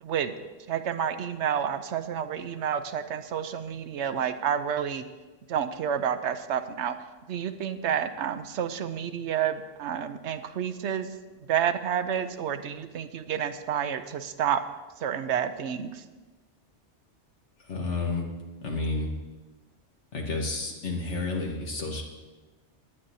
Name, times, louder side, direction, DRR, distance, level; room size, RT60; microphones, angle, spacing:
voice 1, 0.0-0.3 0.7-5.0 5.5-6.9 7.3-11.1 11.5-14.6 15.0-16.0, right 8 dB, 75° right, 10 dB, 1.0 m, -29 dB
voice 2, 17.7-18.3 18.6-19.1 20.1-22.0, left 3 dB, 80° left, 0 dB, 1.6 m, -30 dB
18.5 x 10.0 x 2.7 m, 1.3 s
omnidirectional pair, 1.2 m